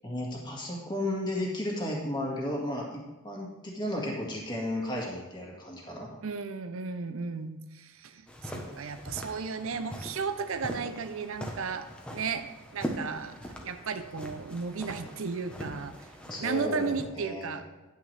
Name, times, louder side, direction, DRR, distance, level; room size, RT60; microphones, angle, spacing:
voice 1, 0.0-6.1 16.3-17.6, left 1 dB, 20° left, -1 dB, 1.8 m, -34 dB
voice 2, 6.2-12.5 12.7-16.0 16.4-17.7, right 5 dB, 70° right, 10 dB, 0.6 m, -34 dB
sound 1, 8.3-17.0, equal, 5° left, 1.0 m, -41 dB
10.0 x 9.2 x 3.4 m, 1.1 s
head